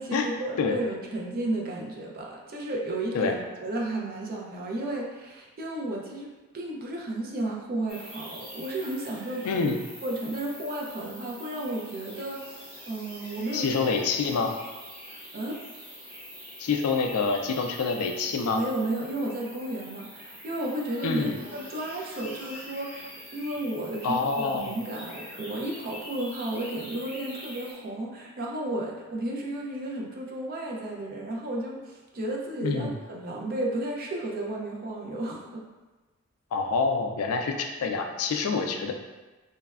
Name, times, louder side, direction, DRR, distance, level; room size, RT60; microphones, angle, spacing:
voice 1, 0.0-9.7 10.0-13.8 14.3-14.5 15.1-15.6 18.5-35.6 38.3-38.4, right 1 dB, 40° right, -2 dB, 0.4 m, -33 dB
sound 1, 7.9-27.7, equal, 10° right, 0.7 m, -44 dB
voice 2, 9.4-9.8 13.5-14.5 16.6-18.6 21.0-21.4 24.0-24.7 32.6-33.0 36.5-38.9, left 4 dB, 80° left, 4 dB, 0.3 m, -27 dB
3.2 x 2.0 x 2.3 m, 1.2 s
head